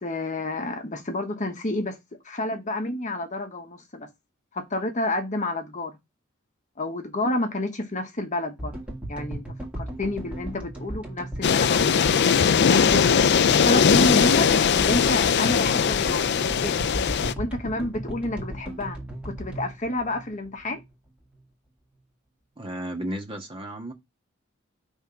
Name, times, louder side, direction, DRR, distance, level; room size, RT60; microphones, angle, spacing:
voice 1, 0.0-2.0 2.2-4.1 4.5-6.0 6.8-8.8 9.1-9.5 9.8-12.0 12.6-16.3 16.6-16.9 17.3-19.0 19.2-20.8, left 1 dB, 35° left, 1.1 m, -29 dB
sound 1, 8.6-20.9, right 1 dB, 5° right, 1.8 m, -36 dB
sound 2, 11.4-17.3, left 7 dB, 55° left, 0.4 m, -20 dB
voice 2, 22.6-23.9, right 1 dB, 25° right, 1.4 m, -33 dB
5.7 x 3.6 x 5.6 m
head